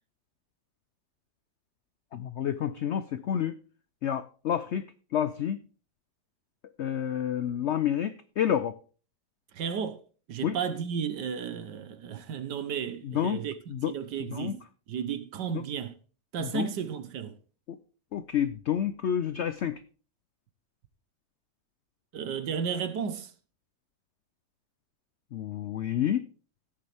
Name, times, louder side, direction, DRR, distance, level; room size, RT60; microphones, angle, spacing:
voice 1, 2.1-3.6 4.0-4.9 5.1-5.6 6.8-8.8 10.4-10.6 13.0-13.4 13.7-13.9 14.3-14.6 16.4-16.7 18.1-19.8 25.3-26.3, left 9 dB, 80° left, 0.6 m, -29 dB
voice 2, 9.5-10.0 10.3-13.5 13.9-14.6 14.9-15.9 16.3-17.3 22.1-23.3, right 7 dB, 80° right, 1.6 m, -33 dB
16.5 x 6.8 x 3.4 m
omnidirectional pair, 1.8 m